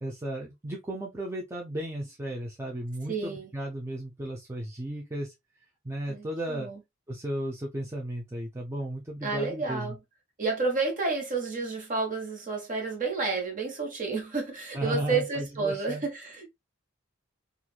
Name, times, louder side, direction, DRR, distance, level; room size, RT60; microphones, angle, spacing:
voice 1, 0.0-5.3 5.8-6.7 7.1-10.0 14.7-16.0, right 1 dB, 15° right, 0.5 m, -34 dB
voice 2, 3.1-3.5 6.1-6.8 9.2-10.0 10.4-16.5, right 4 dB, 40° right, 1.1 m, -30 dB
3.0 x 2.4 x 2.2 m
head